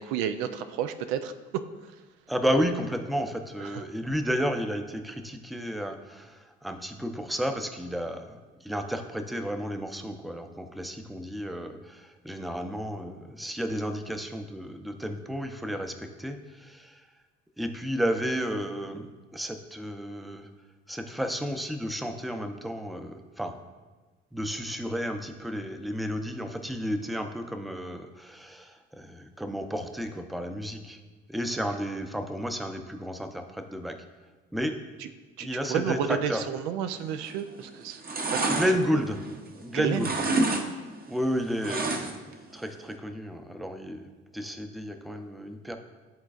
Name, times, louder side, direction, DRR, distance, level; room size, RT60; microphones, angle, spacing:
voice 1, 0.0-1.3 3.6-3.8 35.0-35.1 35.4-38.0 38.3-39.0 39.7-40.4, right 9 dB, 80° right, 9 dB, 0.5 m, -31 dB
voice 2, 2.3-17.0 17.6-20.5 20.9-23.5 24.3-31.0 31.3-34.0 34.5-34.8 35.4-36.4 38.4-39.2 39.6-40.2 41.1-44.0 44.3-45.8, equal, ahead, 6 dB, 0.6 m, -32 dB
sound 1, 37.2-37.6 37.9-39.6 39.9-40.7 40.9-42.3 42.7-42.8, right 2 dB, 30° right, 0.8 m, -28 dB
11.5 x 3.9 x 2.4 m, 1.2 s
hypercardioid pair, 60°, 30 cm